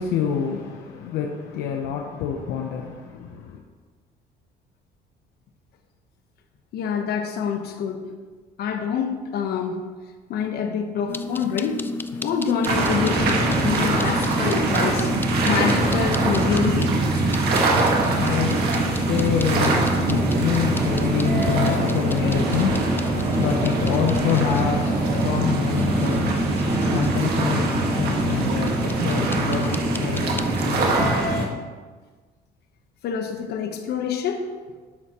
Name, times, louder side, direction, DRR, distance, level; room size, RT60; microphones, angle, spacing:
voice 1, 0.0-3.6 17.5-31.6, left 8 dB, 90° left, 0.8 m, -27 dB
voice 2, 6.7-8.0 8.6-9.8 10.3-11.9 12.1-15.1 15.4-16.9 33.0-34.4, left 7 dB, 70° left, 1.2 m, -26 dB
sound 1, 11.1-30.7, left 3 dB, 10° left, 0.4 m, -33 dB
sound 2, 12.6-31.5, right 2 dB, 70° right, 1.8 m, -22 dB
12.0 x 8.1 x 3.1 m
cardioid pair, 110°, 17 cm